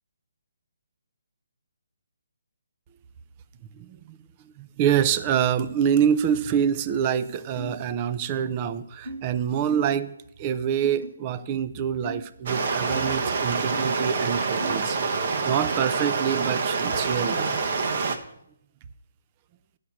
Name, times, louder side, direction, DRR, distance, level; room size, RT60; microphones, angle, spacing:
voice 1, 3.7-4.2 4.4-17.5, right 8 dB, 25° right, 14 dB, 0.5 m, -26 dB
sound 1, 7.6-7.7 8.4-8.5 9.0-9.2 9.7-9.9 10.8-11.1 12.0-12.2 12.9-13.0 13.7-13.8 14.6-14.8, right 1 dB, 75° right, 3.3 m, -35 dB
Stream, 12.5-18.2, right 4 dB, 50° right, 1.0 m, -26 dB
8.3 x 6.5 x 7.3 m, 0.74 s
hypercardioid pair, 155°, 0 cm